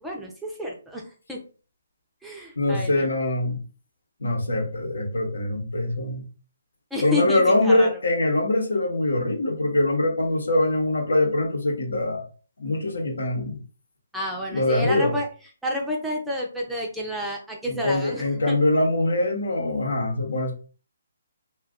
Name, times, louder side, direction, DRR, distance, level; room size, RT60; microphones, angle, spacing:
voice 1, 0.0-1.0 1.3-1.4 2.2-3.1 6.9-7.9 14.1-15.3 15.6-18.6, left 1 dB, 5° right, -2 dB, 0.5 m, -30 dB
voice 2, 2.6-3.6 4.2-6.3 7.0-12.3 12.6-13.6 14.5-15.1 17.7-20.5, left 1 dB, 85° left, 2 dB, 0.9 m, -23 dB
2.5 x 2.4 x 3.5 m, 0.37 s
hypercardioid pair, 150°, 0 cm